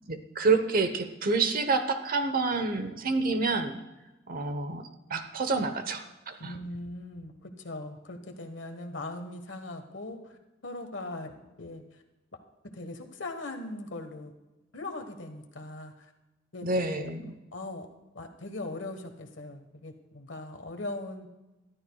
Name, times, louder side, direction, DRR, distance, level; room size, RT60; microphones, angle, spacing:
voice 1, 0.1-3.8 4.3-6.5 16.6-17.3, right 3 dB, 50° right, 9 dB, 1.0 m, -28 dB
voice 2, 6.4-10.4 10.6-11.3 11.6-12.0 12.7-14.3 14.7-16.1 16.5-16.7 16.9-17.1 17.5-17.9 18.1-21.3, left 2 dB, 70° left, 6 dB, 1.4 m, -40 dB
22.0 x 13.0 x 2.3 m, 1.0 s
head